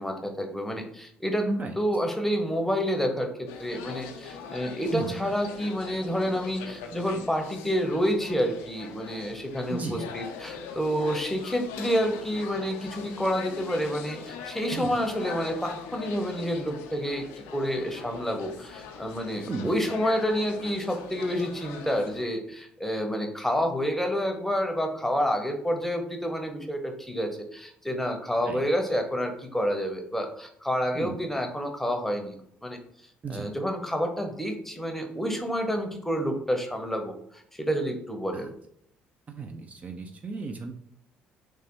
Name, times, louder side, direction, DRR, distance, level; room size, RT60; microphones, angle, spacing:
voice 1, 0.0-1.5 1.8-17.2 17.5-32.4 32.6-32.8 33.3-37.2 37.5-38.5, equal, 5° left, 3 dB, 0.7 m, -29 dB
sound 1, 3.5-22.2, left 6 dB, 85° left, 0.4 m, -42 dB
voice 2, 4.9-5.3 9.7-10.1 14.7-14.9 19.5-19.8 28.4-28.6 30.9-31.3 33.2-33.5 38.3-38.5 39.3-40.7, right 3 dB, 35° right, 4 dB, 0.4 m, -34 dB
3.2 x 2.1 x 3.0 m, 0.69 s
hypercardioid pair, 60°, 4 cm